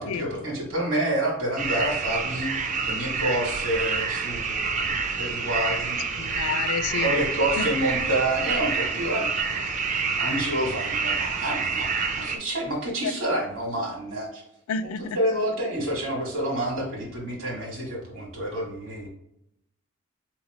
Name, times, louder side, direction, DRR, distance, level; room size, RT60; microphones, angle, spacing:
voice 1, 0.0-6.0 7.0-14.4 15.1-19.1, right 1 dB, 65° right, 1.5 m, -28 dB
sound 1, 1.6-12.4, right 5 dB, 35° right, 0.4 m, -28 dB
voice 2, 6.2-7.2 7.6-7.7 13.0-13.1 14.7-15.2, left 6 dB, 80° left, 0.3 m, -29 dB
4.1 x 2.9 x 2.9 m
head